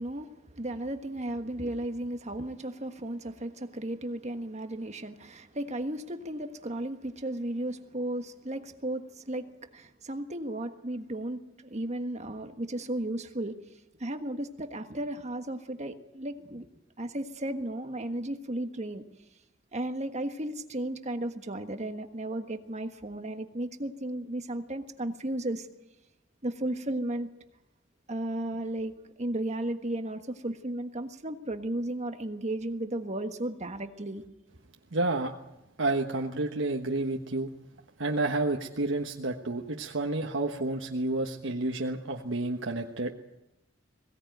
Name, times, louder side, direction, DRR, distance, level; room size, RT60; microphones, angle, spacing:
voice 1, 0.0-13.5 14.0-16.7 17.0-19.0 19.7-25.7 26.4-27.3 28.1-28.9 29.2-34.2, right 1 dB, 35° right, 7 dB, 1.5 m, -34 dB
voice 2, 34.9-35.3 35.8-37.5 38.0-43.1, right 2 dB, 90° right, 2 dB, 1.3 m, -30 dB
22.0 x 17.0 x 9.3 m, 0.93 s
head